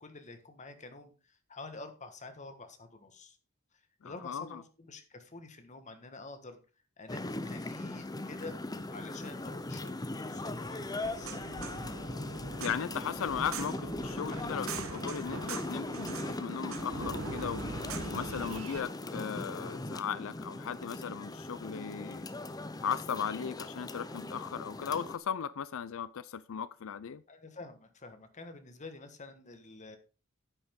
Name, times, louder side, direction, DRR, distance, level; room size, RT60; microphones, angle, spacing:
voice 1, 0.0-3.4 4.0-6.6 7.0-8.5 8.9-11.4 27.3-30.0, left 3 dB, 35° left, 1.5 m, -48 dB
voice 2, 4.0-4.6 12.6-17.6 18.1-22.2 22.8-27.2, left 7 dB, 70° left, 0.4 m, -37 dB
sound 1, 7.1-25.2, left 2 dB, 20° left, 0.7 m, -39 dB
sound 2, 11.0-18.8, right 5 dB, 75° right, 1.0 m, -43 dB
9.9 x 8.5 x 3.7 m
head